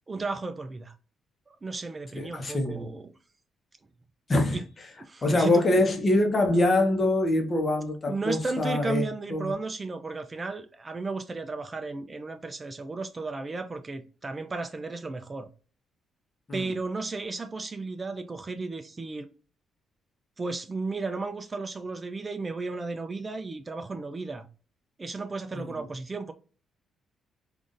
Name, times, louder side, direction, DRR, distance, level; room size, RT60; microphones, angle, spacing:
voice 1, 0.1-0.9 1.6-3.1 4.5-4.6 5.0-5.7 8.1-15.5 16.5-19.3 20.4-24.5 25.0-26.3, right 3 dB, 25° right, 0.3 m, -34 dB
voice 2, 2.1-2.9 4.3-4.6 5.2-9.5 16.5-16.7 25.5-25.8, left 2 dB, 35° left, 0.9 m, -24 dB
3.7 x 2.5 x 2.5 m
cardioid pair, 90°, 0 cm